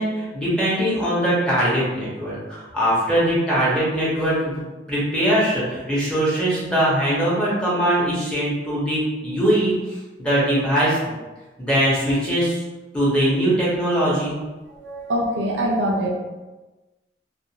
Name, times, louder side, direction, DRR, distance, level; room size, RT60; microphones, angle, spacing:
voice 1, 0.0-4.5 4.9-11.1 11.6-12.6 12.9-14.4, right 1 dB, 5° left, -9 dB, 0.8 m, -21 dB
voice 2, 14.7-16.1, equal, 80° right, -1 dB, 0.5 m, -24 dB
2.5 x 2.3 x 2.8 m, 1.2 s
head